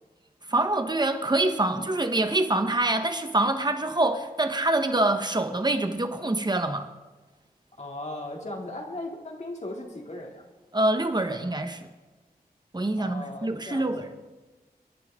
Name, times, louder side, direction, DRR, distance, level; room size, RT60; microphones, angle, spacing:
voice 1, 0.5-6.9 10.7-11.9 12.7-14.1, right 2 dB, 25° right, 7 dB, 1.4 m, -25 dB
voice 2, 7.8-10.4 13.0-13.9, left 1 dB, 45° left, 0 dB, 3.2 m, -37 dB
27.5 x 11.0 x 3.9 m, 1.2 s
wide cardioid pair, 70°, 16 cm